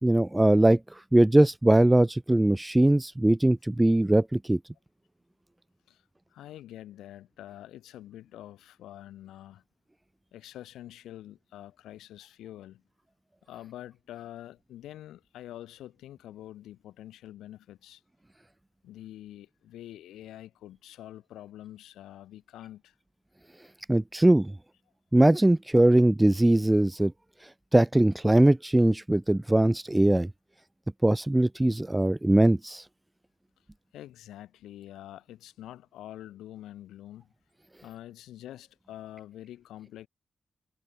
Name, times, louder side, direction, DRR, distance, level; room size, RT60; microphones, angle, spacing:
voice 1, 0.0-4.6 23.9-24.5 25.1-27.1 27.7-30.3 31.0-32.8, right 1 dB, 15° right, 1.5 m, -21 dB
voice 2, 6.3-9.6 10.3-12.8 13.5-18.0 18.8-22.9 25.8-25.9 33.9-37.3 37.8-40.1, left 13 dB, 90° left, 5.0 m, -46 dB
supercardioid pair, 40°, 0 cm